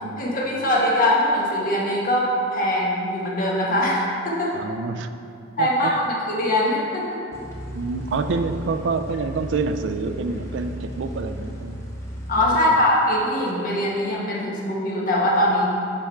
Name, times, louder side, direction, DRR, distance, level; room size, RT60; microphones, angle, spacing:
voice 1, 0.2-4.5 5.6-7.2 12.3-15.7, left 1 dB, 45° left, -4 dB, 1.3 m, -22 dB
voice 2, 4.5-5.1 5.6-6.0 7.7-11.8 12.4-12.8, right 4 dB, 70° right, 9 dB, 0.4 m, -27 dB
sound 1, 7.3-12.4, equal, 15° left, 0.9 m, -35 dB
9.9 x 3.5 x 4.5 m, 2.6 s
head